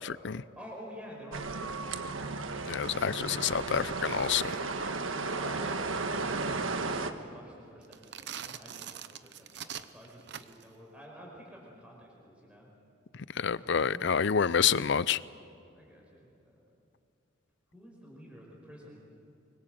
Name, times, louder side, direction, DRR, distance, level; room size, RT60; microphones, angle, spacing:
voice 1, 0.0-0.4 2.6-4.5 13.4-15.2, left 7 dB, 60° left, 18 dB, 0.5 m, -28 dB
voice 2, 0.5-2.4 5.2-12.7 13.5-14.0 15.7-16.6 17.7-19.0, equal, 5° right, -3 dB, 4.9 m, -50 dB
sound 1, 1.3-7.1, right 3 dB, 80° right, 1.5 m, -34 dB
sound 2, 7.8-10.8, right 9 dB, 60° right, 0.9 m, -43 dB
24.5 x 24.5 x 7.8 m, 2.6 s
head